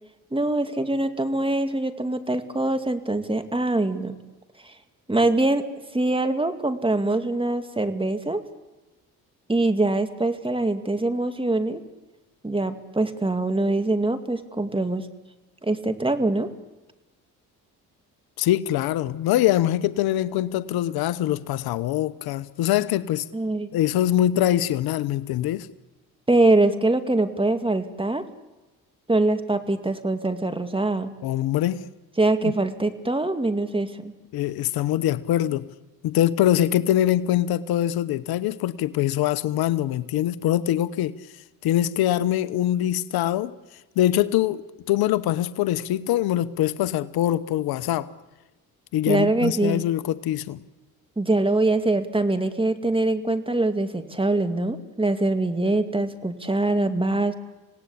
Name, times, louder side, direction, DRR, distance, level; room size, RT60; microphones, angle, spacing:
voice 1, 0.3-4.2 4.6-4.7 5.1-5.7 5.9-8.4 9.5-11.8 12.4-15.1 15.6-16.5 23.3-23.7 26.3-28.3 29.1-31.1 32.2-34.1 49.1-49.8 51.2-57.3, right 2 dB, 15° right, 8 dB, 2.3 m, -23 dB
voice 2, 18.4-23.3 23.7-25.7 31.2-31.9 32.4-32.5 34.3-35.7 36.0-41.2 41.6-43.5 44.0-48.1 48.9-50.6, left 12 dB, 80° left, 15 dB, 1.0 m, -23 dB
27.0 x 18.0 x 8.5 m, 1.1 s
supercardioid pair, 65°, 36 cm